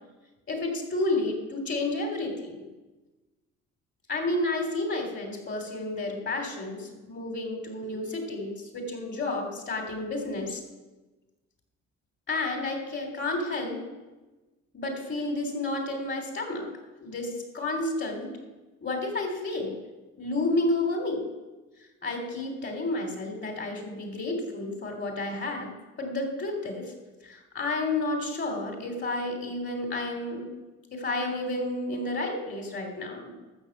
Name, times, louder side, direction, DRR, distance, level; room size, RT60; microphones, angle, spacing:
voice 1, 0.5-2.6 4.1-10.6 12.3-13.8 14.7-16.7 17.0-18.4 18.8-19.8 20.2-21.2 22.0-25.7 26.0-26.9 27.2-30.5 30.9-33.3, left 2 dB, 40° left, 3 dB, 3.3 m, -31 dB
13.0 x 6.7 x 8.0 m, 1.2 s
cardioid pair, 100°, 30 cm